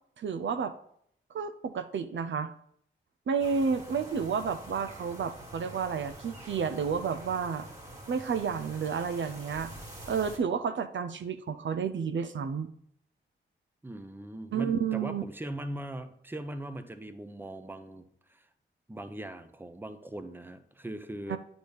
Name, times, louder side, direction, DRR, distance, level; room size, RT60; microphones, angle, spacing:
voice 1, 0.2-0.7 1.3-2.5 3.3-7.7 8.1-9.7 10.1-12.7 14.5-15.2 21.3-21.4, right 6 dB, 65° right, 8 dB, 0.5 m, -31 dB
sound 1, 3.4-10.4, right 1 dB, 35° right, 2.4 m, -46 dB
voice 2, 13.8-18.5 18.9-21.4, right 1 dB, 10° right, 9 dB, 0.7 m, -40 dB
9.3 x 4.0 x 3.5 m, 0.68 s
cardioid pair, 50°, 21 cm